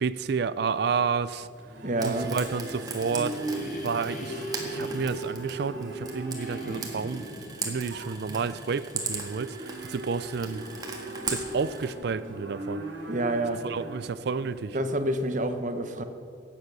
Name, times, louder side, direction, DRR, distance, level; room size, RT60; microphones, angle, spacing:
voice 1, 0.0-1.5 2.0-3.4 3.8-7.2 7.6-10.6 11.3-12.8 13.6-14.8, right 5 dB, 55° right, 15 dB, 0.4 m, -30 dB
Livestock farm animals working animals, 0.7-15.4, right 1 dB, 80° right, 2.3 m, -40 dB
voice 2, 1.8-2.3 13.1-13.6 14.7-16.0, right 1 dB, 40° right, 8 dB, 0.9 m, -28 dB
Frying (food), 2.0-11.9, right 4 dB, 20° right, 1.6 m, -39 dB
sound 1, 2.8-9.2, right 1 dB, 45° left, 1.2 m, -40 dB
17.0 x 7.7 x 6.1 m, 2.4 s
head